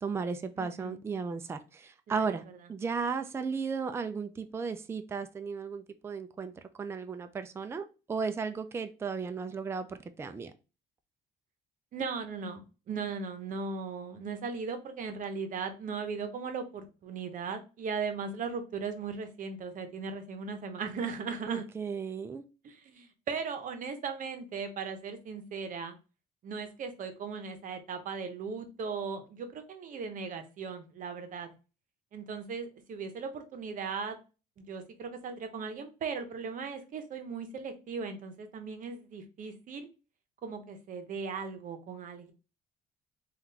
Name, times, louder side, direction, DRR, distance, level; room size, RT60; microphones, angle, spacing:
voice 1, 0.0-2.4 2.7-6.5 6.8-10.5 21.5-22.4, right 5 dB, 15° right, 0.3 m, -35 dB
voice 2, 0.6-1.0 2.1-2.3 11.9-21.6 22.6-25.9 26.4-31.5 32.1-34.2 34.6-39.9 40.4-42.3, right 5 dB, 50° right, 0.8 m, -38 dB
3.6 x 2.4 x 2.7 m
cardioid pair, 110°, 17 cm